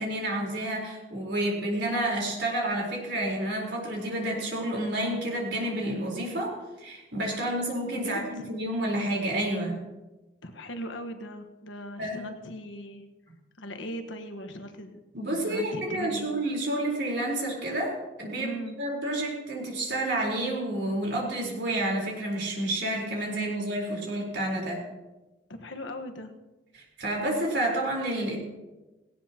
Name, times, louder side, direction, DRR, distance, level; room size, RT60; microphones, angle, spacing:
voice 1, 0.0-9.8 12.0-12.2 15.1-18.5 18.8-24.8 26.7-28.4, right 1 dB, 60° right, -1 dB, 4.2 m, -30 dB
voice 2, 7.9-8.5 10.4-13.0 13.6-15.0 15.2-16.3 18.4-18.8 25.5-26.3, equal, 75° left, 6 dB, 1.4 m, -39 dB
17.5 x 17.5 x 3.0 m, 1.1 s
head